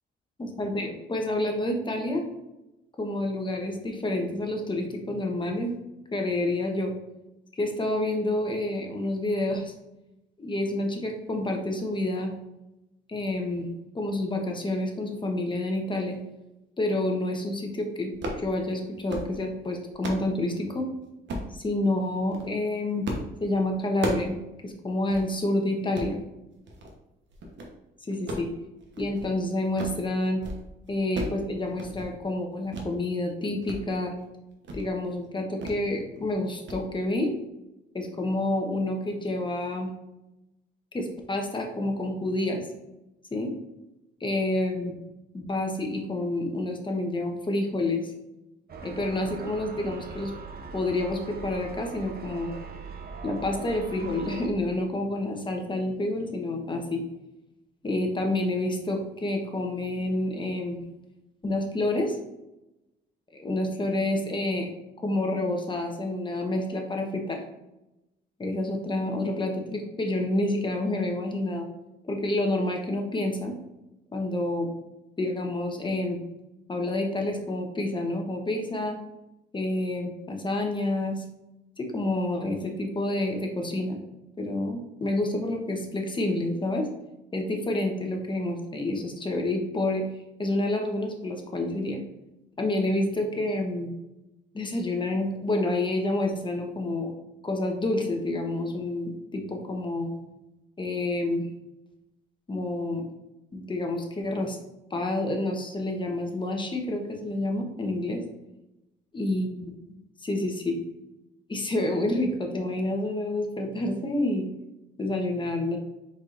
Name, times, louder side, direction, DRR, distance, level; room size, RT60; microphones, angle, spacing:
voice 1, 0.4-2.2 3.0-5.7 6.1-6.9 7.6-9.7 10.4-12.3 13.1-13.7 13.9-16.2 16.8-20.9 21.5-23.1 23.4-24.4 24.6-26.2 28.0-28.5 29.0-30.4 30.9-34.1 34.7-37.3 37.9-39.9 40.9-42.7 43.3-43.5 44.2-44.9 45.3-48.1 48.8-50.3 50.7-52.5 53.2-57.0 57.8-60.8 61.4-62.2 63.3-64.7 65.0-67.4 68.4-71.7 72.0-73.5 74.1-74.7 75.2-76.2 76.7-79.0 79.5-81.2 81.8-84.0 84.4-86.9 87.3-90.1 90.4-92.0 92.6-93.9 94.5-97.1 97.4-100.1 100.8-101.5 102.5-103.0 103.5-104.6 104.9-108.2 109.1-109.8 110.2-110.8 111.5-114.5 115.0-115.8, left 1 dB, 25° left, 2 dB, 1.0 m, -28 dB
sound 1, 18.1-18.5 18.9-19.3 19.7-20.3 21.3-21.5 22.2-22.5 23.0-23.3 23.6-24.4 24.7-24.8 25.1-25.3 25.8-26.1 26.7-27.0 27.3-27.7 28.1-29.3 29.6-30.0 30.3-30.6 30.9-31.4 31.7-32.1 32.7-32.9 33.3-33.8 34.1-34.2 34.6-34.9 35.6-35.8 36.1-36.3 36.7-36.8, right 1 dB, 65° right, 1.0 m, -35 dB
sound 2, 48.7-54.5, right 4 dB, 50° right, 0.7 m, -40 dB
4.8 x 4.3 x 2.5 m, 0.94 s
cardioid pair, 90°, 20 cm